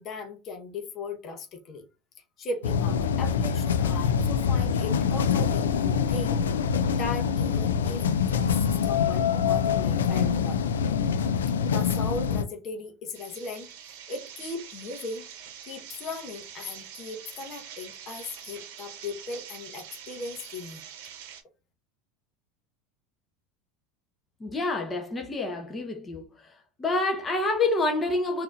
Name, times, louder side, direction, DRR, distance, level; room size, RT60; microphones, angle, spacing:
voice 1, 0.0-1.8 2.4-6.4 7.0-10.6 11.6-13.7 14.1-15.3 15.6-20.8, left 3 dB, 45° left, 1.0 m, -37 dB
sound 1, 2.6-12.4, left 7 dB, 90° left, 0.3 m, -25 dB
sound 2, 13.1-21.4, right 9 dB, 70° right, 0.9 m, -45 dB
voice 2, 24.4-26.2 26.8-28.4, left 2 dB, 20° left, 1.0 m, -27 dB
4.0 x 2.8 x 2.4 m
hypercardioid pair, 90°, 0 cm